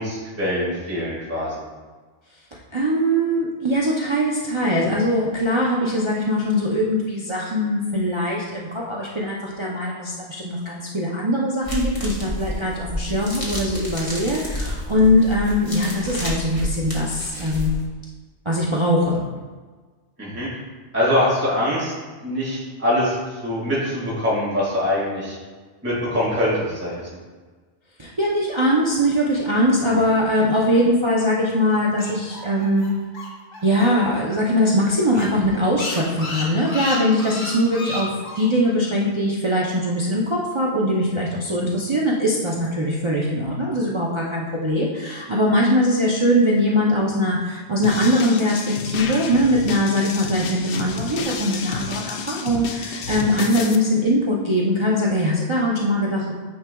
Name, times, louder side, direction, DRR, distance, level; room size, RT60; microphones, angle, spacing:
voice 1, 0.0-1.5 20.2-20.5 20.9-21.9 22.2-23.1 23.4-25.4 25.8-26.9 29.9-30.0, left 1 dB, 10° right, -8 dB, 1.8 m, -23 dB
voice 2, 2.7-17.8 18.5-19.2 28.0-32.9 33.6-38.1 38.4-56.3, equal, 30° right, -5 dB, 0.6 m, -21 dB
sound 1, 11.6-17.9, left 1 dB, 30° left, 1.4 m, -30 dB
sound 2, 31.7-34.2 34.4-34.5 34.8-34.9 35.1-38.5, left 2 dB, 90° left, 1.7 m, -32 dB
sound 3, 47.8-53.7, left 5 dB, 65° left, 0.7 m, -30 dB
9.4 x 4.7 x 2.3 m, 1.4 s
omnidirectional pair, 1.2 m